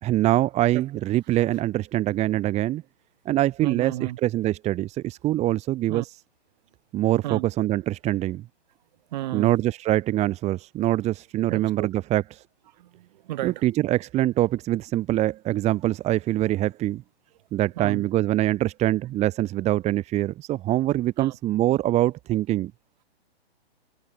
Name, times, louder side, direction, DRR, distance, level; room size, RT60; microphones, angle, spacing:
voice 1, 0.0-2.8 3.3-6.1 6.9-8.4 9.3-12.2 13.4-17.0 17.5-22.7, right 14 dB, 20° right, 2.6 m, -24 dB
voice 2, 3.6-4.2 5.9-6.0 7.2-7.5 9.1-9.6 11.5-11.9 12.7-13.6 17.8-18.0 21.2-21.4, right 15 dB, 45° right, 4.1 m, -33 dB
figure-of-eight pair, 130°, 31 cm